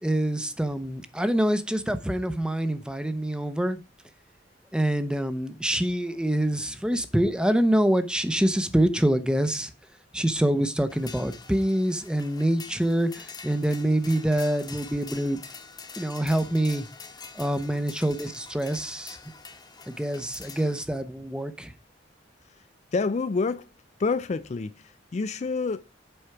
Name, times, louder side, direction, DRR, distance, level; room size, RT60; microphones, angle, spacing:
voice 1, 0.0-3.8 4.7-9.7 10.1-15.4 16.0-16.8 17.4-19.2 19.9-21.7, right 1 dB, 5° right, 0.7 m, -25 dB
sound 1, 10.9-20.8, left 5 dB, 25° left, 1.1 m, -45 dB
voice 2, 22.9-23.7 24.0-25.8, left 4 dB, 40° left, 0.4 m, -28 dB
7.9 x 4.8 x 5.7 m
head